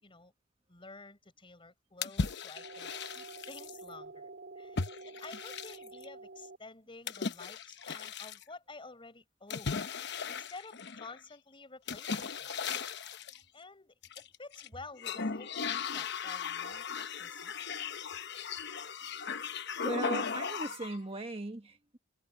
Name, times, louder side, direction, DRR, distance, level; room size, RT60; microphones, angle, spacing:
voice 1, 0.0-0.3 0.7-4.3 4.6-4.8 5.1-9.9 10.3-12.9 13.5-17.7, left 3 dB, 25° left, 5.2 m, -51 dB
sound 1, 2.0-3.8 4.8-6.0 7.1-8.4 9.5-11.2 11.9-13.4 14.0-14.7 15.0-21.0, left 5 dB, 60° left, 1.0 m, -37 dB
sound 2, 2.6-6.6, right 3 dB, 60° right, 4.3 m, -48 dB
voice 2, 19.8-22.0, right 2 dB, 30° right, 1.4 m, -38 dB
head